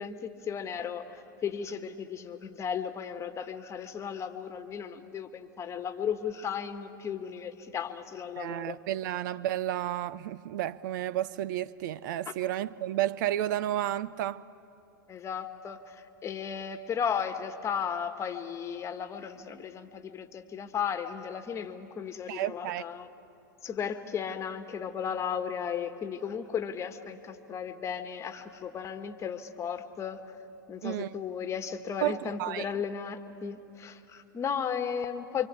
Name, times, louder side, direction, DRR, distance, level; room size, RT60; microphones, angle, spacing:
voice 1, 0.0-8.8 15.1-23.1 23.6-30.2 30.7-35.5, left 7 dB, 25° left, 1.6 m, -35 dB
voice 2, 8.4-14.4 22.3-22.8 30.8-31.1 32.0-32.7, right 13 dB, 60° right, 0.6 m, -32 dB
27.5 x 25.0 x 8.5 m
hypercardioid pair, 105°, 11 cm